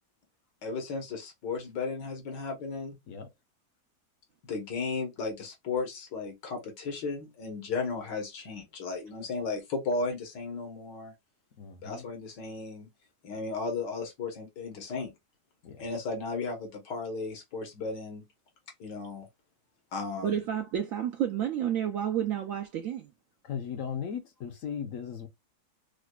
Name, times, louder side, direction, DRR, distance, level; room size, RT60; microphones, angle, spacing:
voice 1, 0.6-3.0 4.5-11.1 11.8-12.9 13.2-15.1 15.8-18.2 18.8-19.3 19.9-20.4, left 4 dB, 80° left, 1.8 m, -35 dB
voice 2, 11.6-12.1 15.6-15.8 23.4-25.3, left 7 dB, 60° left, 0.9 m, -37 dB
voice 3, 20.2-23.1, right 9 dB, 75° right, 0.8 m, -30 dB
4.8 x 2.2 x 2.2 m
omnidirectional pair, 1.8 m